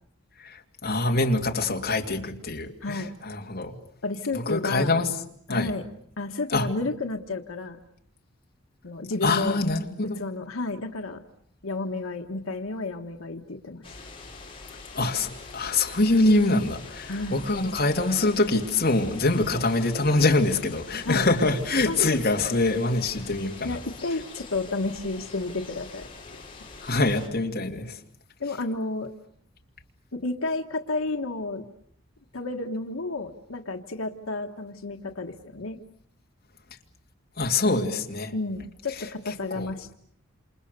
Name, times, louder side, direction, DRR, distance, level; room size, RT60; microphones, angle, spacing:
voice 1, 0.4-3.8 4.3-5.1 5.5-5.7 6.5-6.7 9.2-10.2 14.9-23.8 26.8-28.0 37.4-38.3 39.5-39.9, left 2 dB, 50° left, 1 dB, 2.6 m, -24 dB
voice 2, 2.8-3.1 4.0-5.0 5.5-5.8 6.2-7.8 8.8-9.6 10.2-11.2 11.6-13.8 17.1-17.4 21.0-21.3 21.8-22.2 23.6-26.4 28.4-29.1 30.1-31.6 32.3-35.8 38.3-39.9, left 2 dB, 85° left, 4 dB, 1.5 m, -31 dB
sound 1, 13.8-27.3, left 3 dB, 25° left, 5.0 m, -44 dB
28.0 x 28.0 x 6.8 m, 0.68 s
head